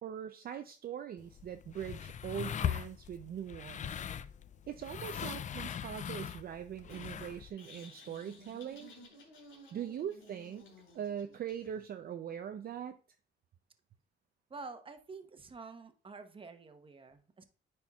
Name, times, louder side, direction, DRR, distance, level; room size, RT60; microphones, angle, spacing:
voice 1, 0.0-4.0 4.7-8.9 9.7-10.7 10.9-13.0, right 9 dB, 50° right, 7 dB, 0.5 m, -41 dB
sound 1, 1.2-7.5, left 9 dB, 40° left, 0.4 m, -40 dB
sound 2, 6.9-11.9, left 2 dB, 90° left, 2.9 m, -56 dB
voice 2, 14.5-17.4, right 4 dB, 25° right, 8 dB, 0.9 m, -48 dB
9.7 x 4.4 x 2.3 m, 0.38 s
cardioid pair, 90°, 20 cm